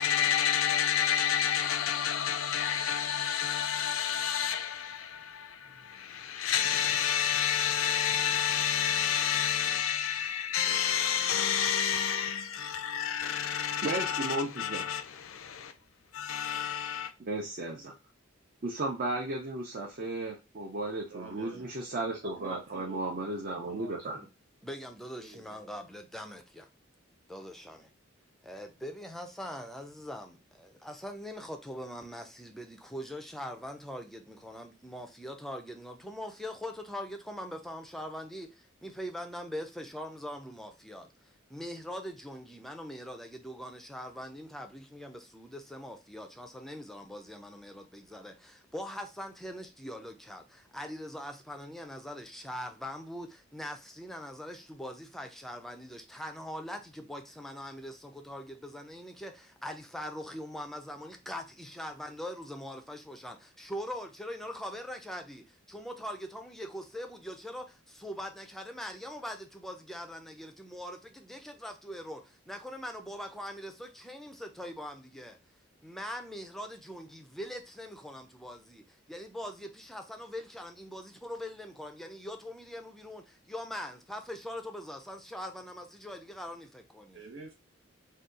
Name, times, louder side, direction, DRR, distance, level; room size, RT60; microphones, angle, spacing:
voice 1, 0.0-15.7 16.1-17.1, left 9 dB, 75° left, 0.4 m, -29 dB
voice 2, 13.8-14.9 17.2-17.9 18.6-24.2, right 2 dB, 45° right, 0.5 m, -34 dB
voice 3, 21.1-21.7 22.4-23.0 23.6-24.3 25.2-25.6 87.1-87.5, right 4 dB, 70° right, 1.2 m, -47 dB
voice 4, 24.6-26.7 27.3-27.9 28.4-75.4 75.8-87.2, equal, ahead, 0.4 m, -42 dB
2.7 x 2.3 x 3.6 m
head